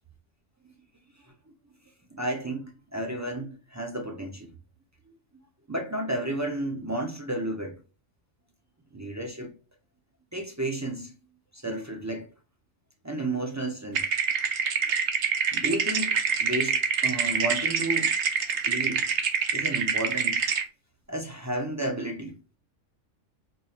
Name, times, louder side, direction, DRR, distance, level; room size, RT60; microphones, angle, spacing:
voice 1, 2.1-4.5 5.7-7.8 8.9-9.5 10.3-11.1 11.5-12.3 13.0-14.1 15.5-18.1 18.7-19.1 19.5-20.4 21.1-22.4, right 1 dB, 30° right, 0.3 m, -32 dB
sound 1, 13.9-20.6, right 6 dB, 70° right, 0.9 m, -26 dB
4.4 x 2.5 x 2.8 m
omnidirectional pair, 1.3 m